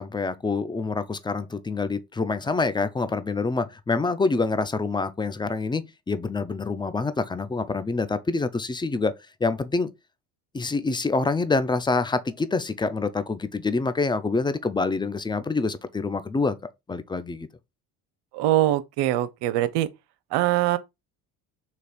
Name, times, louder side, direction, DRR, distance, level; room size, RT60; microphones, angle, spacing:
voice 1, 0.0-9.1 9.4-9.9 10.5-16.6 16.9-17.5, left 3 dB, 10° left, 0.4 m, -26 dB
voice 2, 18.3-19.9 20.3-20.8, right 14 dB, 70° right, 0.6 m, -23 dB
3.3 x 2.9 x 4.1 m
supercardioid pair, 75°, 42 cm